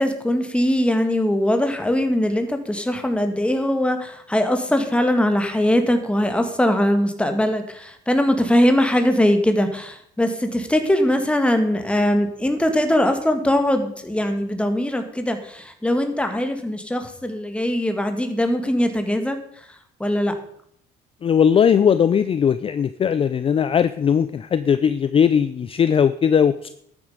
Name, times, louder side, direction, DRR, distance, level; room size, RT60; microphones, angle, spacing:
voice 1, 0.0-19.4 20.0-20.3, left 1 dB, 5° left, 6 dB, 2.0 m, -21 dB
voice 2, 21.2-26.7, left 7 dB, 35° left, 14 dB, 0.5 m, -18 dB
12.5 x 9.7 x 5.1 m, 0.68 s
cardioid pair, 110°, 17 cm